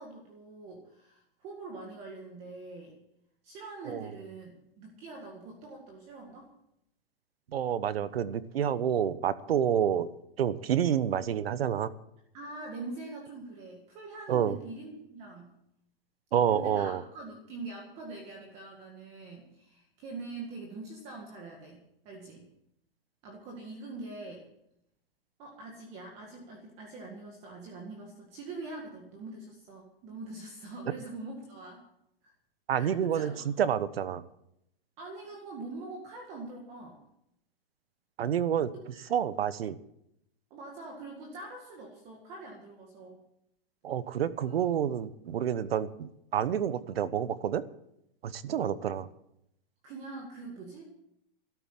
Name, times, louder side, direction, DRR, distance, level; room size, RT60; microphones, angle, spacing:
voice 1, 0.0-2.9 3.4-6.5 12.3-15.5 16.5-22.5 23.2-24.4 25.4-31.8 32.2-32.3 32.8-33.4 35.0-37.0 38.9-39.0 40.5-43.2 44.4-44.5 48.4-48.8 49.8-50.8, right 3 dB, 20° right, 1 dB, 1.9 m, -44 dB
voice 2, 7.5-10.1 10.4-11.9 14.3-14.6 16.3-17.0 32.7-34.2 38.2-38.7 39.1-39.8 43.8-47.6 48.2-49.1, right 9 dB, 85° right, 15 dB, 1.1 m, -28 dB
13.0 x 11.0 x 7.5 m, 0.78 s
hypercardioid pair, 175°, 30 cm